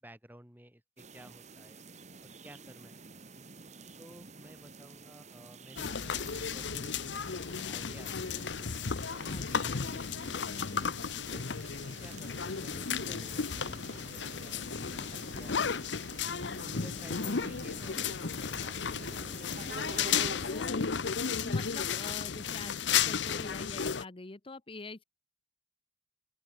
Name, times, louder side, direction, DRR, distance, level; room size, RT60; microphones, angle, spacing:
voice 1, 0.0-1.8 2.2-3.2 4.0-10.6 11.2-16.0 16.6-19.2 20.3-21.3, equal, 10° right, 6.1 m, -54 dB
sound 1, 1.0-20.4, right 3 dB, 40° right, 2.1 m, -49 dB
sound 2, 5.8-24.0, left 6 dB, 80° left, 0.9 m, -34 dB
voice 2, 9.3-9.7 20.5-20.8 21.4-22.7 23.0-25.0, left 2 dB, 30° left, 0.9 m, -44 dB
open air
head